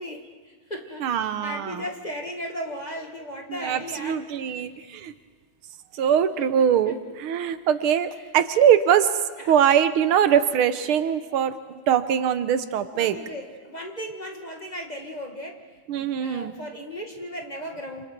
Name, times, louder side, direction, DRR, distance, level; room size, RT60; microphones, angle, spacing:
voice 1, 0.0-4.6 6.4-6.9 9.4-9.6 12.9-15.6 15.9-18.0, equal, 20° left, 2 dB, 1.9 m, -36 dB
voice 2, 1.0-1.8 3.5-5.1 5.9-9.2 9.5-13.2 15.9-16.5, right 9 dB, 80° right, 12 dB, 1.8 m, -22 dB
28.0 x 27.5 x 4.5 m, 1.5 s
omnidirectional pair, 2.3 m